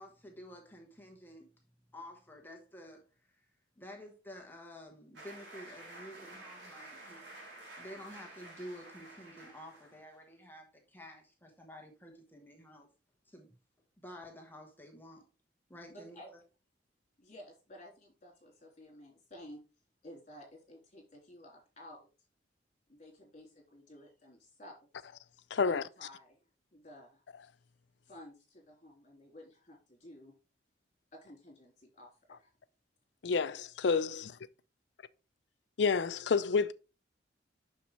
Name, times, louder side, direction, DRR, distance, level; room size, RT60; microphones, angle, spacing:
voice 1, 0.0-1.5 1.9-3.4 3.8-7.3 7.8-12.9 13.3-13.6 14.0-15.2 15.7-16.2, equal, 10° left, 1.2 m, -50 dB
sound 1, 5.1-10.2, right 2 dB, 70° right, 2.9 m, -51 dB
voice 2, 15.9-16.3 17.2-19.6 20.0-22.1 22.9-25.1 25.5-26.4 26.7-27.2 28.0-30.3 31.1-32.5, left 1 dB, 40° left, 3.6 m, -53 dB
voice 3, 25.5-25.8 33.2-33.5 33.8-34.2 35.8-36.7, left 5 dB, 65° left, 0.4 m, -28 dB
7.0 x 6.3 x 3.2 m
head